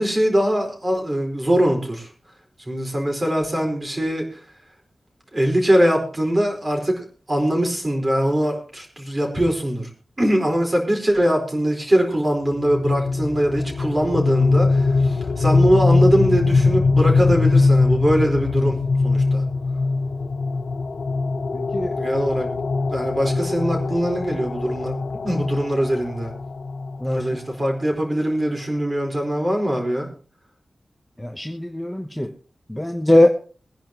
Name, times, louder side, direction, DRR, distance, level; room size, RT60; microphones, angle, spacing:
voice 1, 0.0-2.1 2.7-4.2 5.3-9.9 10.2-19.4 22.0-22.5 22.9-24.9 25.2-26.3 27.0-30.1, equal, 25° right, 2 dB, 4.6 m, -22 dB
sound 1, 12.5-27.4, left 3 dB, 60° left, 0.8 m, -21 dB
voice 2, 21.5-21.9 27.0-27.3 31.2-32.3 32.7-33.3, left 1 dB, 5° left, 4 dB, 1.0 m, -20 dB
22.5 x 10.5 x 3.0 m, 0.39 s
wide cardioid pair, 135°, 0 cm